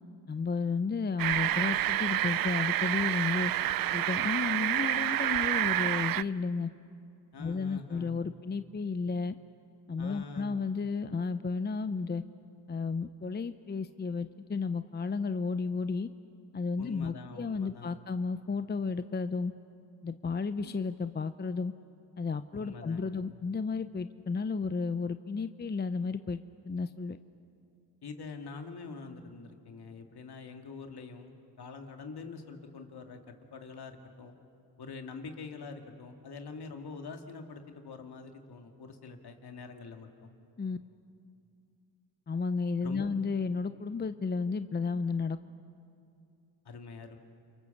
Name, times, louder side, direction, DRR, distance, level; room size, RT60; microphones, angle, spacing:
voice 1, 0.3-3.5 3.9-6.7 7.4-9.4 9.9-12.2 12.7-16.1 16.5-19.5 20.0-21.7 22.2-26.4 26.7-27.2 40.6-40.8 42.3-45.4, left 4 dB, 25° left, 11 dB, 0.7 m, -33 dB
sound 1, 1.2-6.2, right 12 dB, 55° right, 0.5 m, -29 dB
voice 2, 7.3-8.3 10.0-10.6 16.8-18.0 22.5-23.1 28.0-34.3 34.8-40.3 42.8-43.1 46.6-47.2, left 4 dB, 60° left, 4 dB, 2.4 m, -45 dB
29.0 x 23.5 x 7.2 m, 2.5 s
cardioid pair, 75°, 43 cm